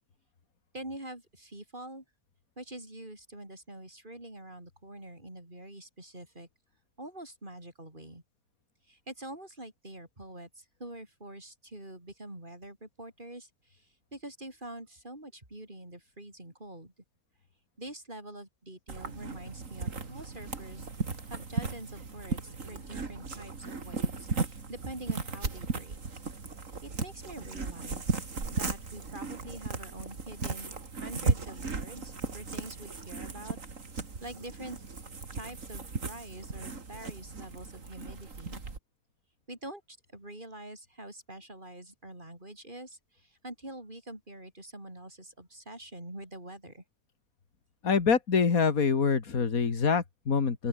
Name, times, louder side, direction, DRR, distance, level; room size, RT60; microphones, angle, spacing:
voice 1, 0.7-2.0 2.6-6.5 7.0-8.2 8.9-16.9 17.8-20.9 21.2-26.0 26.8-28.1 28.5-30.7 31.0-33.6 34.2-34.8 35.3-38.6 39.5-46.8, right 1 dB, 30° right, 6.2 m, -45 dB
sound 1, 18.9-38.8, right 4 dB, 60° right, 2.9 m, -36 dB
voice 2, 47.8-50.7, left 5 dB, 65° left, 2.6 m, -25 dB
open air
omnidirectional pair, 1.6 m